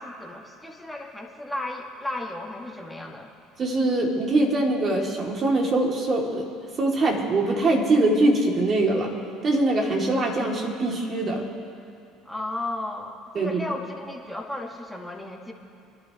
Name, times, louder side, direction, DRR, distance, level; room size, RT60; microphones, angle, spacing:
voice 1, 0.0-3.3 12.3-15.5, left 1 dB, 5° left, 0 dB, 2.1 m, -34 dB
voice 2, 3.6-6.5 6.8-9.1 9.4-11.5 13.3-13.6, right 2 dB, 40° right, 0 dB, 2.7 m, -23 dB
25.0 x 12.0 x 3.1 m, 2.5 s
supercardioid pair, 80°, 0 cm